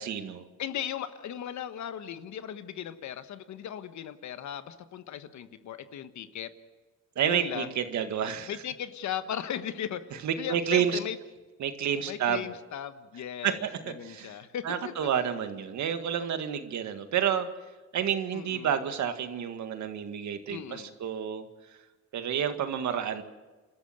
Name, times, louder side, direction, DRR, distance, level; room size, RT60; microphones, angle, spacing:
voice 1, 0.0-0.4 7.2-8.5 10.2-11.0 11.6-12.4 13.4-14.3 14.6-17.5 17.9-21.5 22.1-23.2, right 9 dB, 70° right, 8 dB, 1.9 m, -29 dB
voice 2, 0.6-6.5 7.2-7.7 8.5-11.2 12.1-13.7 14.0-14.9 18.3-18.7 20.5-20.9, left 9 dB, 70° left, 11 dB, 1.3 m, -37 dB
28.5 x 13.5 x 7.9 m, 1.2 s
cardioid pair, 90°, 30 cm